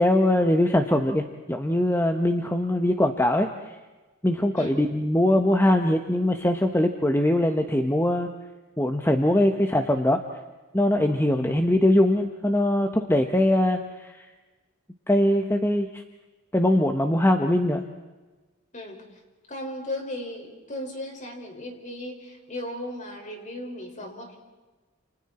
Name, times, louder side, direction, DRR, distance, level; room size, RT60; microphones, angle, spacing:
voice 1, 0.0-3.5 4.2-8.3 8.8-10.2 10.7-14.3 15.1-16.0 16.5-17.8, left 1 dB, 10° left, 5 dB, 1.3 m, -22 dB
voice 2, 4.6-4.9 18.7-19.0 19.5-24.4, left 1 dB, 40° left, 2 dB, 5.7 m, -36 dB
30.0 x 29.0 x 4.5 m, 1.2 s
head